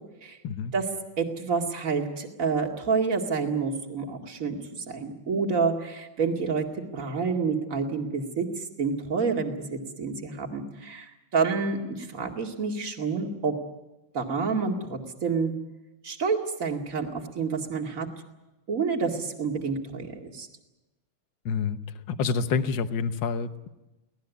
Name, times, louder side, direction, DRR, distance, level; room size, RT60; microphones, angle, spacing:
voice 1, 1.2-4.6 4.9-6.6 6.9-13.5 14.1-15.5 16.0-18.1 18.7-20.5, right 5 dB, 40° right, 2 dB, 2.6 m, -28 dB
voice 2, 21.4-21.8 22.1-23.7, left 5 dB, 60° left, 10 dB, 1.6 m, -27 dB
24.5 x 18.0 x 8.3 m, 1.0 s
omnidirectional pair, 2.4 m